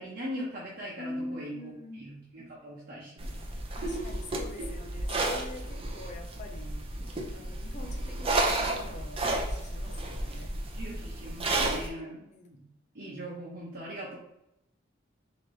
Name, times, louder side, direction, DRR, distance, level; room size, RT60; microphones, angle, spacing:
voice 1, 0.0-3.4 3.8-4.1 4.6-4.7 10.7-12.6 12.9-14.2, right 1 dB, 50° right, -6 dB, 0.9 m, -40 dB
voice 2, 1.0-2.1 3.8-6.9 7.3-10.5 11.7-12.5, left 1 dB, 40° left, 1 dB, 0.6 m, -44 dB
sound 1, 3.2-11.9, right 2 dB, 30° right, 0.6 m, -32 dB
4.0 x 2.9 x 3.2 m, 0.83 s
head